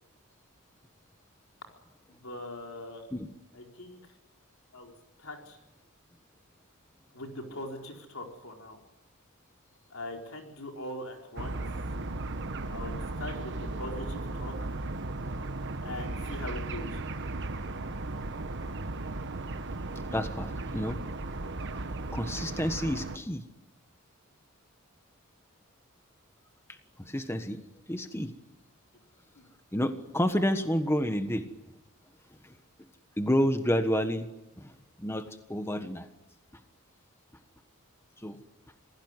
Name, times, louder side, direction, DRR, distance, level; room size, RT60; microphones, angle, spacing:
voice 1, 2.1-3.0 3.5-4.0 4.7-4.9 5.2-5.6 7.1-8.8 9.9-11.6 12.7-14.5 15.8-17.0 29.3-29.5, left 1 dB, 65° left, 2 dB, 4.4 m, -41 dB
sound 1, 11.4-23.2, right 2 dB, 55° right, 1.3 m, -36 dB
voice 2, 20.1-21.0 22.1-23.4 27.0-27.6 27.9-28.3 29.7-31.4 32.4-32.5 33.2-34.3 34.6-36.1 36.5-36.6 38.2-38.4, equal, 10° left, 8 dB, 1.3 m, -29 dB
26.5 x 17.0 x 9.8 m, 0.96 s
head